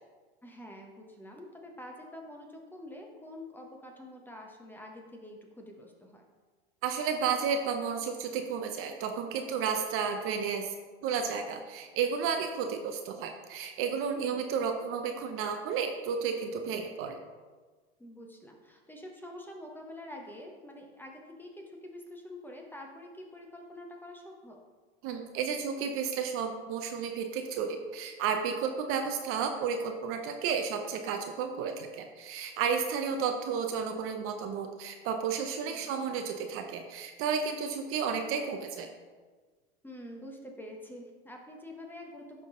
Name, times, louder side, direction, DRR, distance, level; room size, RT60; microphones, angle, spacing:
voice 1, 0.4-6.2 14.2-14.4 18.0-24.6 35.7-35.9 39.8-42.5, left 1 dB, 5° left, 1 dB, 1.0 m, -46 dB
voice 2, 6.8-10.7 11.0-17.2 25.0-38.9, right 6 dB, 45° right, 5 dB, 0.8 m, -32 dB
11.0 x 3.8 x 3.8 m, 1.4 s
hypercardioid pair, 110°, 31 cm